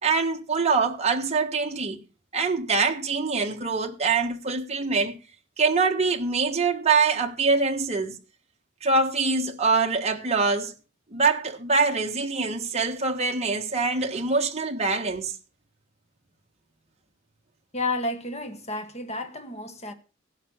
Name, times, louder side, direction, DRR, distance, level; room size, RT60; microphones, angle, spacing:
voice 1, 0.0-2.0 2.3-5.2 5.6-8.2 8.8-10.7 11.1-15.3, right 4 dB, 30° right, 1.5 m, -24 dB
voice 2, 17.7-19.9, left 2 dB, 35° left, 1.6 m, -31 dB
16.5 x 5.7 x 6.5 m
head